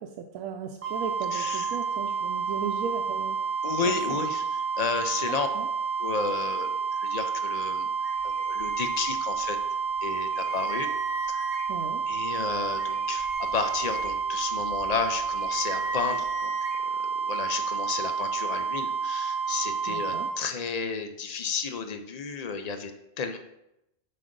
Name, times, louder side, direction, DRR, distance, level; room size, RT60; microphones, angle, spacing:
voice 1, 0.0-3.4 4.1-4.2 5.3-5.7 11.7-12.0 19.9-20.3, right 7 dB, 90° right, 3 dB, 1.0 m, -36 dB
sound 1, 0.8-20.3, right 6 dB, 25° right, 1.3 m, -30 dB
voice 2, 1.3-1.7 3.6-5.5 6.0-7.9 8.2-9.6 10.0-10.9 11.3-11.5 12.1-16.5 17.2-23.4, left 5 dB, 75° left, 7 dB, 0.3 m, -32 dB
sound 2, 8.0-9.6 10.0-10.1 10.3-11.9 12.4-16.8, equal, 50° right, 1.3 m, -41 dB
7.6 x 4.0 x 5.1 m, 0.85 s
omnidirectional pair, 1.4 m